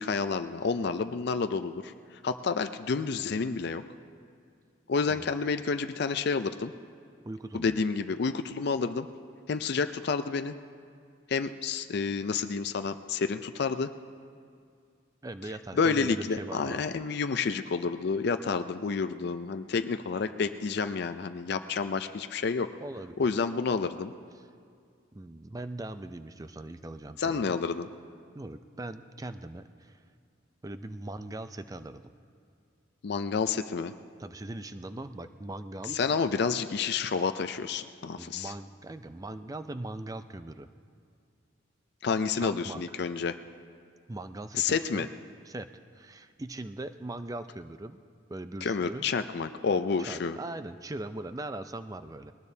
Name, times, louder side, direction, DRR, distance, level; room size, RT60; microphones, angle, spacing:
voice 1, 0.0-1.9 2.2-3.8 4.9-6.7 7.5-9.1 9.5-10.5 11.3-13.9 15.8-22.7 23.2-24.1 27.2-27.9 33.0-33.9 35.9-38.5 42.0-43.4 44.5-45.1 48.6-50.4, left 5 dB, 55° left, 9 dB, 0.4 m, -29 dB
voice 2, 7.2-7.8 15.2-17.0 22.8-23.3 25.1-27.5 28.3-29.9 30.6-32.1 34.2-36.0 38.2-40.7 42.4-42.8 44.1-45.1 45.5-45.7 45.9-48.0 48.3-49.0 50.1-52.3, right 2 dB, 15° right, 10 dB, 0.4 m, -40 dB
21.0 x 19.0 x 2.7 m, 2.2 s
head